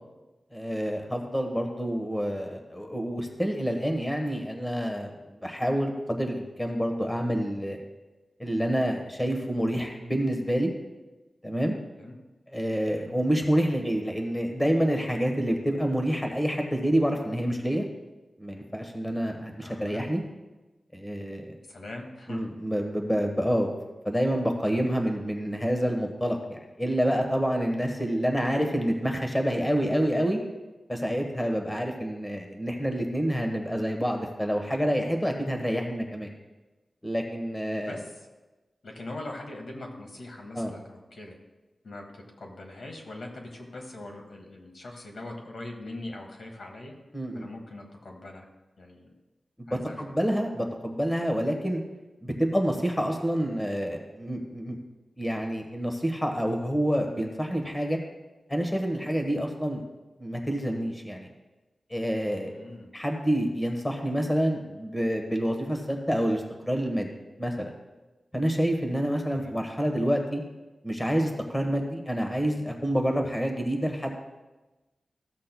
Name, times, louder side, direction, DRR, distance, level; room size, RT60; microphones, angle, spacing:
voice 1, 0.5-5.1 5.4-7.8 8.4-10.7 11.4-11.7 12.5-17.8 18.4-20.2 20.9-21.4 22.3-23.7 24.0-30.4 30.9-36.3 37.0-38.0 40.5-40.7 47.1-47.5 49.7-51.8 52.2-54.8 55.2-58.0 58.5-59.8 60.2-61.3 61.9-62.5 62.9-67.1 67.4-67.7 68.3-70.4 70.8-74.1, equal, 10° left, 3 dB, 1.1 m, -28 dB
voice 2, 19.6-20.1 21.7-22.5 37.8-38.1 38.8-41.4 41.8-46.9 47.3-48.5 48.8-49.1 49.7-50.3 62.5-62.9 69.3-69.6, left 2 dB, 75° left, 2 dB, 1.4 m, -42 dB
14.0 x 7.4 x 2.2 m, 1.1 s
wide cardioid pair, 85°, 0 cm